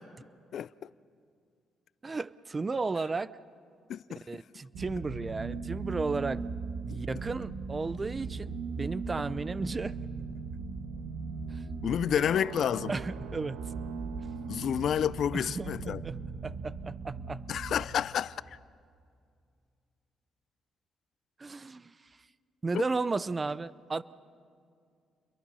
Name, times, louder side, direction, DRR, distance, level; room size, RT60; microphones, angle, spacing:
voice 1, 2.0-3.3 4.3-6.4 6.8-10.0 11.5-11.6 12.9-13.6 15.3-16.2 16.4-17.4 21.4-22.0 22.6-24.0, right 3 dB, 25° right, 0.6 m, -34 dB
voice 2, 3.9-4.2 6.9-7.0 11.8-12.9 14.5-16.0 17.5-18.4 22.7-22.8, left 9 dB, 65° left, 0.5 m, -29 dB
sound 1, 4.7-17.9, right 4 dB, 80° right, 1.4 m, -38 dB
29.5 x 22.5 x 5.6 m
cardioid pair, 90°, 0 cm